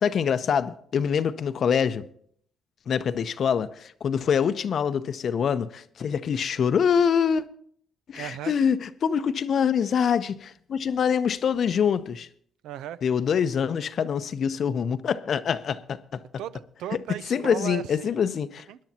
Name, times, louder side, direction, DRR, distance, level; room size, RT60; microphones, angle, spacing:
voice 1, 0.0-2.1 2.9-7.4 8.1-12.3 13.0-16.2 17.3-18.6, left 7 dB, 55° left, 0.6 m, -25 dB
voice 2, 8.1-8.5 12.6-13.0 16.4-18.2 18.7-18.8, right 11 dB, 90° right, 0.5 m, -36 dB
21.0 x 10.5 x 2.8 m
cardioid pair, 90°, 0 cm